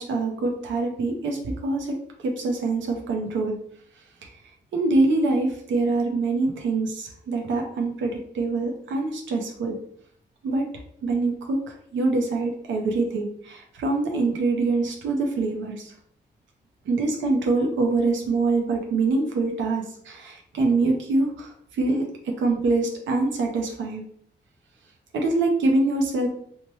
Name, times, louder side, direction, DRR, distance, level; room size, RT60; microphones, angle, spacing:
voice 1, 0.0-1.9 2.2-3.6 4.2-4.3 4.7-9.8 10.4-10.7 11.0-15.9 16.9-24.0 25.1-26.3, right 3 dB, 90° right, 2 dB, 0.5 m, -24 dB
3.0 x 2.1 x 3.0 m, 0.65 s
cardioid pair, 70°, 19 cm